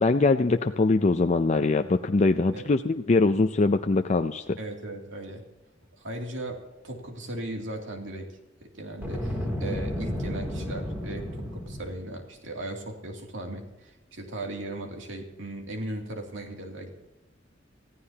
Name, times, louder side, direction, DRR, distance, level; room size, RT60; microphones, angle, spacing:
voice 1, 0.0-4.6, left 3 dB, 35° left, 6 dB, 0.5 m, -22 dB
voice 2, 4.6-5.4 6.0-16.9, right 1 dB, 70° right, 2 dB, 2.7 m, -37 dB
Boom, 8.9-12.1, left 1 dB, 10° right, 2.9 m, -32 dB
24.5 x 15.5 x 2.9 m, 1.0 s
head